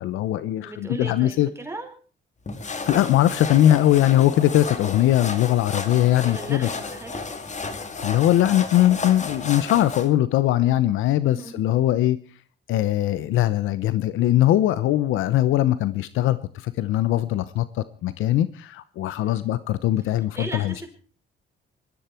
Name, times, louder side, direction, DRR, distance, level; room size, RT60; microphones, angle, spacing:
voice 1, 0.0-1.5 2.9-6.7 8.0-12.2 12.7-20.9, left 13 dB, 85° left, 15 dB, 0.8 m, -21 dB
voice 2, 0.6-1.9 6.2-7.3 10.5-10.8 11.2-11.6 19.2-19.5 20.3-20.9, right 2 dB, 15° right, 4 dB, 4.9 m, -37 dB
sound 1, 2.5-10.1, left 4 dB, 35° left, 2.5 m, -33 dB
19.5 x 14.0 x 4.5 m, 0.41 s
cardioid pair, 90°, 20 cm